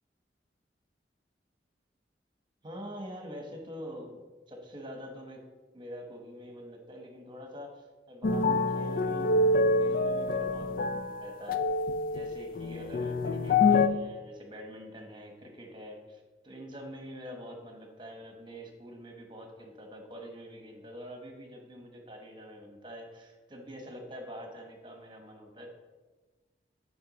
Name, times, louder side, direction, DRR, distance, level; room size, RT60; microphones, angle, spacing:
voice 1, 2.6-4.2 4.5-5.4 5.7-9.4 9.8-11.6 12.1-25.7, equal, 25° right, 3 dB, 1.2 m, -45 dB
sound 1, 8.2-13.9, left 3 dB, 50° left, 0.4 m, -26 dB
7.8 x 5.5 x 4.0 m, 1.2 s
head